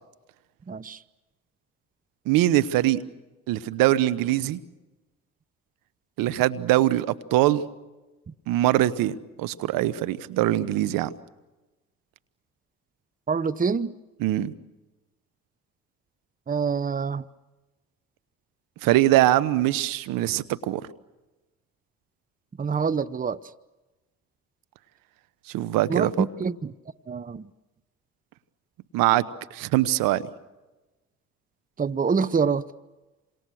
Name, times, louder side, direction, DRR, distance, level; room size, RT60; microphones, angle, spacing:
voice 1, 0.7-1.0 13.3-13.9 16.5-17.2 22.6-23.4 25.9-26.7 27.1-27.5 31.8-32.7, right 5 dB, 25° right, 0.9 m, -26 dB
voice 2, 2.3-3.0 3.5-4.6 6.2-7.6 8.5-11.1 14.2-14.5 18.8-20.8 25.5-26.3 28.9-29.2 29.5-30.2, right 15 dB, 75° right, 1.2 m, -22 dB
28.5 x 27.0 x 6.4 m
supercardioid pair, 65°, 34 cm